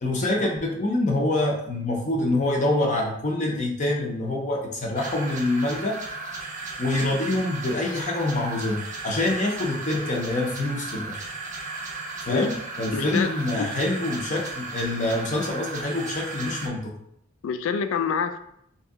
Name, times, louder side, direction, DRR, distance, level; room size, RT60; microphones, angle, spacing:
voice 1, 0.0-6.0 6.8-11.2 12.3-12.5 12.8-16.9, left 2 dB, 40° left, -1 dB, 0.6 m, -26 dB
sound 1, 4.9-16.7, right 3 dB, 40° right, 0.6 m, -35 dB
voice 2, 12.9-13.7 17.4-18.4, left 6 dB, 85° left, 10 dB, 0.3 m, -27 dB
3.0 x 2.7 x 3.5 m, 0.73 s
head